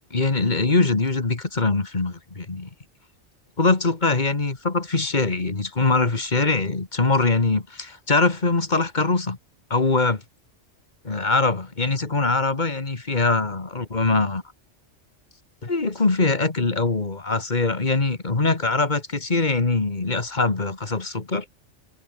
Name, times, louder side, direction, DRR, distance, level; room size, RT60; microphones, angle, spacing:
voice 1, 0.1-2.7 3.6-9.4 9.7-10.2 11.0-14.4 15.6-21.5, left 3 dB, 40° left, 2.2 m, -22 dB
omnidirectional pair, 1.2 m